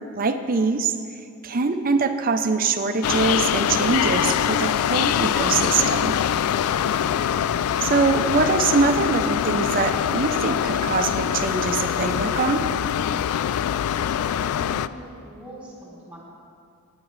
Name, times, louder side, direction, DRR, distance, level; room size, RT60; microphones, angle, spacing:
voice 1, 0.1-0.9 1.4-6.1 7.8-12.6, right 4 dB, 40° right, 7 dB, 0.6 m, -23 dB
sound 1, 3.0-14.9, left 9 dB, 80° left, 0.3 m, -23 dB
voice 2, 14.0-16.2, equal, 5° right, -6 dB, 3.4 m, -42 dB
20.5 x 9.1 x 3.2 m, 2.4 s
head